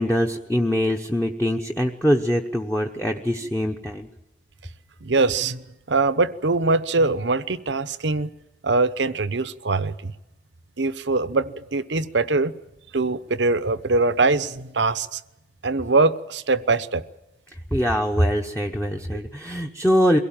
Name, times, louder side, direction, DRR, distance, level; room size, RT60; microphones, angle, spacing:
voice 1, 0.0-4.1 17.7-20.2, equal, 10° left, 1.0 m, -23 dB
voice 2, 5.0-5.6 5.9-8.3 8.6-10.1 10.8-12.5 12.9-15.2 15.6-17.0, right 3 dB, 80° right, 1.0 m, -22 dB
23.0 x 17.5 x 8.9 m
head